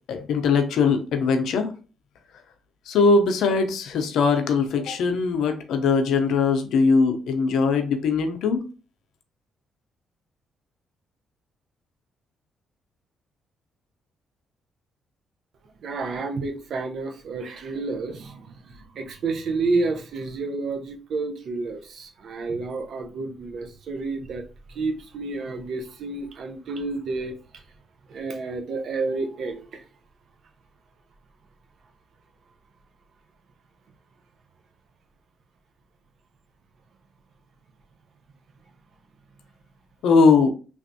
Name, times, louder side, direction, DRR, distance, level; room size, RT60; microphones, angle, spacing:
voice 1, 0.1-1.7 2.9-8.6 40.0-40.5, left 4 dB, 75° left, 0.6 m, -20 dB
voice 2, 15.8-24.4 24.7-27.6 28.1-29.9, right 3 dB, 65° right, 0.6 m, -30 dB
3.3 x 2.5 x 2.7 m
cardioid pair, 90°, 0 cm